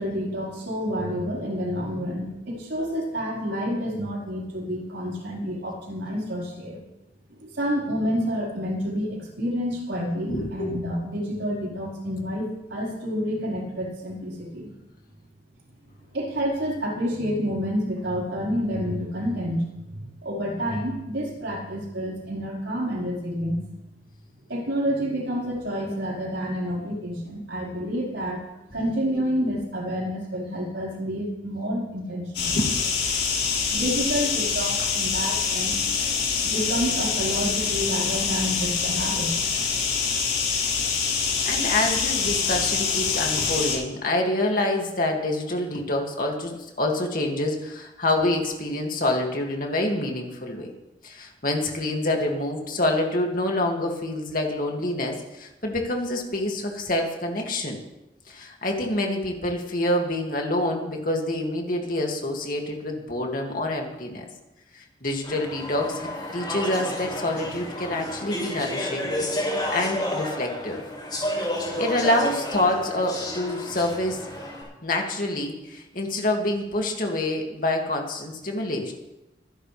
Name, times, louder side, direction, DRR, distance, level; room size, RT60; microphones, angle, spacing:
voice 1, 0.0-6.8 7.3-14.7 16.1-19.6 19.9-23.6 24.5-28.4 28.7-32.6 33.7-35.7 36.4-39.3, equal, 85° right, -4 dB, 5.1 m, -29 dB
voice 2, 10.3-10.7 32.5-32.7 40.7-40.8 41.4-50.7 51.0-57.8 58.3-64.2 64.7-69.3 69.7-70.8 71.4-74.3 74.8-78.9, left 1 dB, 50° left, 1 dB, 2.5 m, -27 dB
sound 1, 32.3-43.7, left 5 dB, 80° left, 6.3 m, -25 dB
Speech / Chatter, 65.2-74.6, left 1 dB, 25° left, 5.8 m, -31 dB
24.0 x 11.0 x 3.5 m, 0.93 s
head